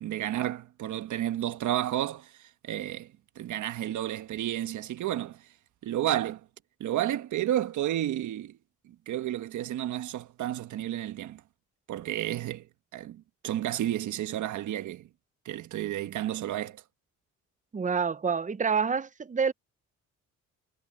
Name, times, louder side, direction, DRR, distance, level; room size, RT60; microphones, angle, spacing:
voice 1, 0.0-5.4 5.8-6.4 6.8-8.6 8.9-11.4 11.9-12.7 12.9-15.1 15.4-16.8, right 12 dB, 75° right, 1.3 m, -31 dB
voice 2, 17.7-19.5, right 6 dB, 25° right, 0.7 m, -27 dB
cardioid pair, 90°, 30 cm